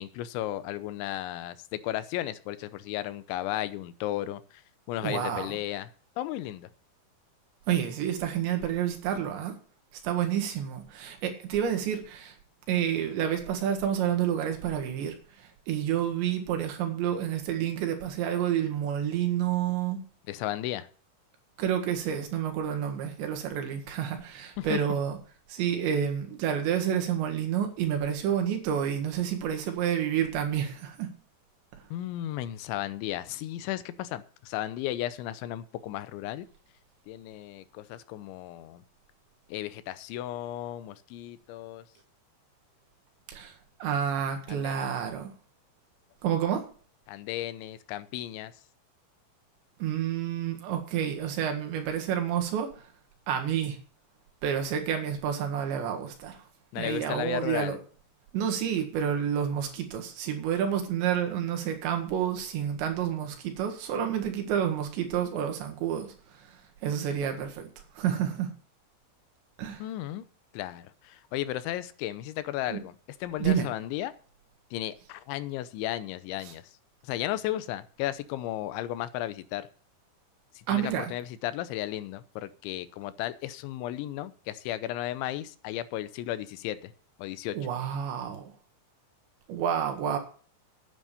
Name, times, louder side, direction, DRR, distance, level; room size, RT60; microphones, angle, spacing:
voice 1, 0.0-4.6 4.9-5.9 6.2-6.7 20.3-20.9 24.6-24.8 31.9-36.5 37.1-38.8 39.5-41.9 44.5-44.9 47.1-48.5 56.7-57.8 69.8-70.2 70.5-74.1 74.7-76.6 77.0-79.7 80.6-86.9 87.2-87.6, left 13 dB, 90° left, 3.2 m, -34 dB
voice 2, 5.0-5.6 7.7-9.5 10.0-12.4 12.7-20.0 21.6-25.2 25.5-31.1 43.3-43.5 43.8-45.3 46.2-46.7 49.8-52.9 53.3-53.8 54.4-56.4 56.8-57.8 58.3-66.5 66.8-67.7 67.9-68.5 69.6-69.8 72.7-72.8 73.4-73.7 80.7-81.1 87.5-88.5 89.5-90.2, right 9 dB, 75° right, 4.0 m, -29 dB
9.3 x 9.2 x 6.8 m
omnidirectional pair, 5.2 m